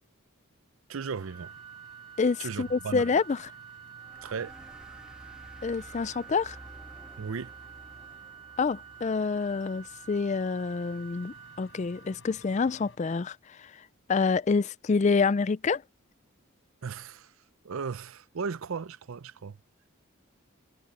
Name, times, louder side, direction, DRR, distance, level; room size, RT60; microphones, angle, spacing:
voice 1, 0.9-1.5 2.4-3.1 4.2-4.5 7.2-7.5 16.8-17.3 17.6-19.6, right 5 dB, 75° right, 0.5 m, -36 dB
sound 1, 1.2-13.0, left 2 dB, 65° left, 6.5 m, -56 dB
Organ, 1.3-12.4, right 10 dB, 25° right, 2.1 m, -49 dB
voice 2, 2.2-3.5 5.6-6.6 8.6-13.4 14.1-15.8, left 4 dB, 35° left, 0.3 m, -27 dB
sound 2, 4.0-11.1, equal, 5° right, 1.6 m, -53 dB
head